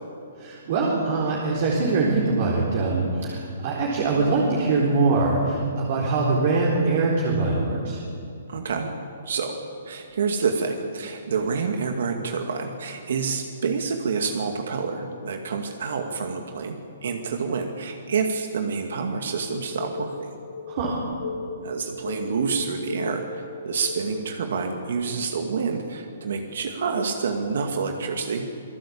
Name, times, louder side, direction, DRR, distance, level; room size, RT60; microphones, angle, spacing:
voice 1, 0.4-8.0 20.7-21.0, right 3 dB, 40° right, -3 dB, 4.0 m, -23 dB
voice 2, 8.5-8.9 9.2-20.3 21.6-28.5, right 5 dB, 65° right, 4 dB, 2.3 m, -28 dB
sound 1, 19.5-24.4, left 4 dB, 80° left, 6.0 m, -36 dB
27.0 x 19.0 x 8.7 m, 2.6 s
hypercardioid pair, 170°, 0 cm